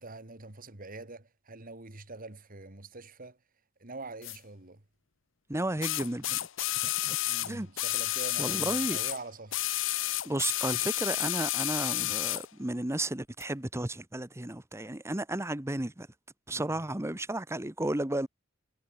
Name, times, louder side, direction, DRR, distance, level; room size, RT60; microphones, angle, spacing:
voice 1, 0.0-3.4 3.8-4.8 7.2-9.6 16.5-16.8, right 2 dB, 45° right, 2.6 m, -44 dB
sound 1, 4.2-4.4 5.8-9.2 9.5-12.5 13.4-13.5, left 16 dB, 75° left, 0.9 m, -31 dB
voice 2, 5.5-6.4 6.8-7.2 7.4-7.7 8.4-9.0 10.2-16.1 16.5-18.3, right 1 dB, 15° right, 1.2 m, -33 dB
head